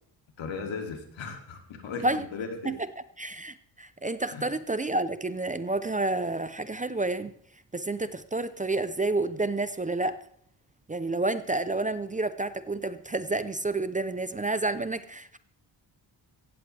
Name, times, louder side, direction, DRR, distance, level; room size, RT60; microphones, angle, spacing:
voice 1, 0.4-2.7 4.3-4.4, left 4 dB, 90° left, 4 dB, 2.6 m, -37 dB
voice 2, 2.6-7.3 7.7-10.2 10.9-15.4, right 2 dB, 20° right, 13 dB, 0.5 m, -30 dB
16.5 x 15.5 x 3.3 m, 0.63 s
wide cardioid pair, 135°, 45 cm